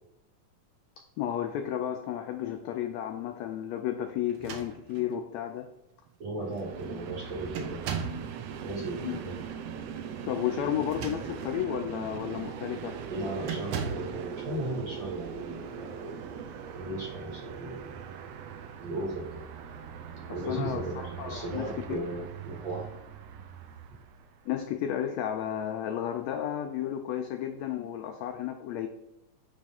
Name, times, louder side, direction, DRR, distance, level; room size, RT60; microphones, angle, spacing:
voice 1, 1.2-5.7 9.0-9.2 10.2-13.0 20.3-20.8 21.2-22.0 24.5-28.9, left 10 dB, 85° left, 6 dB, 1.5 m, -32 dB
sound 1, 4.3-5.2 6.1-6.2 6.5-6.9 7.5-8.3 10.7-11.6 12.1-12.3 13.4-14.2, right 6 dB, 70° right, 1.6 m, -37 dB
voice 2, 6.2-7.8 8.6-9.4 13.1-16.2 16.7-18.0 18.8-19.4 20.3-21.0 21.2-22.9, right 2 dB, 45° right, -3 dB, 1.9 m, -36 dB
Train, 6.4-24.5, right 7 dB, 90° right, 1.4 m, -41 dB
9.0 x 3.2 x 4.2 m, 0.91 s
omnidirectional pair, 3.6 m